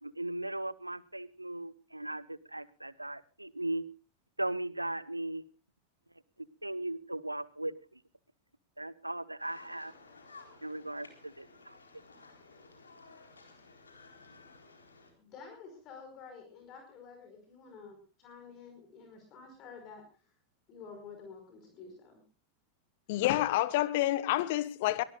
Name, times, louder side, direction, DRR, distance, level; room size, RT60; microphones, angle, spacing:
voice 1, 0.0-3.8 4.4-5.4 6.4-8.0 8.8-9.9 10.6-11.8, right 1 dB, 85° right, 0.9 m, -38 dB
sound 1, 9.4-15.1, left 3 dB, 75° left, 4.1 m, -55 dB
voice 2, 15.2-20.3 20.7-22.2, left 5 dB, 35° left, 5.0 m, -50 dB
voice 3, 23.1-25.0, left 16 dB, 50° left, 1.2 m, -28 dB
23.0 x 19.0 x 2.4 m
figure-of-eight pair, 90°, 0 cm